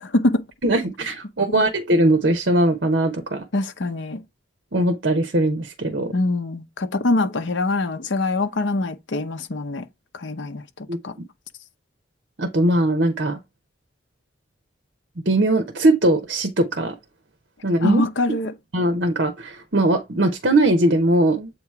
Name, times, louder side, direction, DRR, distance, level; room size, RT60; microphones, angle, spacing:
voice 1, 0.0-0.4 1.5-1.6 3.5-4.2 6.1-9.8 10.1-10.6 11.0-11.1 17.8-18.5, left 2 dB, 70° left, 0.8 m, -24 dB
voice 2, 0.6-3.4 4.7-6.1 10.9-11.0 12.4-13.4 15.3-16.9 17.6-18.0 18.7-21.5, right 1 dB, 60° right, 0.9 m, -20 dB
7.8 x 3.0 x 4.7 m
head